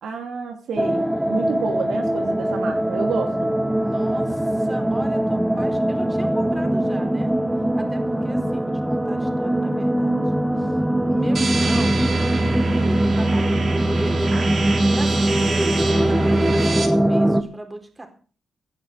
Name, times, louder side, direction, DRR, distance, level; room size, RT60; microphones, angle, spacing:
voice 1, 0.0-3.5, right 5 dB, 85° right, 4 dB, 2.8 m, -29 dB
sound 1, 0.8-17.4, right 1 dB, 5° right, 1.6 m, -22 dB
voice 2, 3.8-7.4 7.8-10.8 11.1-12.0 12.8-14.4 14.7-18.1, right 2 dB, 20° right, 5 dB, 4.4 m, -37 dB
sound 2, 11.3-16.9, right 3 dB, 50° right, 3.7 m, -25 dB
18.0 x 11.0 x 4.8 m, 0.39 s
cardioid pair, 85°, 0 cm